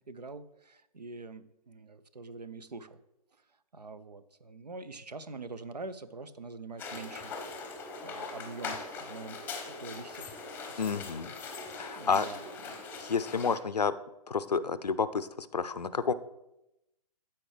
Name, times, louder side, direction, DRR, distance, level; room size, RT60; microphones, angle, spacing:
voice 1, 0.0-3.0 3.7-7.3 8.0-9.4 9.8-10.3 10.7-11.0 11.9-12.8, right 3 dB, 90° right, 14 dB, 0.6 m, -45 dB
sound 1, 6.8-13.6, left 4 dB, 10° left, 0.8 m, -41 dB
voice 2, 10.8-11.3 11.8-12.3 13.0-13.9 14.3-16.1, left 5 dB, 85° left, 14 dB, 0.5 m, -30 dB
13.0 x 4.4 x 3.3 m, 0.89 s
figure-of-eight pair, 125°, 20 cm